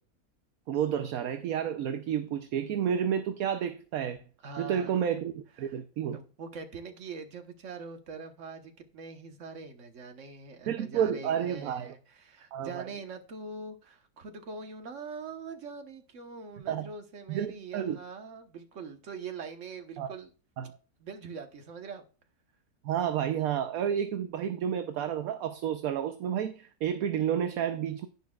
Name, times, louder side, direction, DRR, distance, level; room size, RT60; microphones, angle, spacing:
voice 1, 0.7-4.2 4.6-6.2 10.7-11.9 12.5-12.8 16.7-16.9 17.3-18.0 20.0-20.1 20.6-20.8 22.8-28.1, right 9 dB, 70° right, 1.1 m, -30 dB
voice 2, 4.4-5.0 5.6-5.8 6.1-20.3 21.0-22.0, right 4 dB, 55° right, 1.5 m, -43 dB
11.0 x 9.6 x 2.4 m
omnidirectional pair, 1.7 m